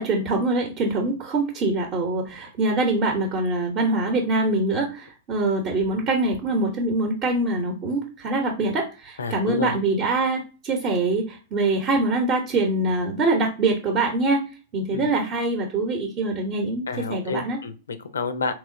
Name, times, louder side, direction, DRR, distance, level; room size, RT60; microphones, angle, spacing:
voice 1, 0.0-14.4 14.7-17.6, right 2 dB, 35° right, 2 dB, 0.7 m, -24 dB
voice 2, 9.2-9.8 14.9-15.1 16.9-18.5, left 4 dB, 85° left, 11 dB, 0.4 m, -29 dB
3.4 x 2.9 x 2.6 m, 0.33 s
hypercardioid pair, 115°, 0 cm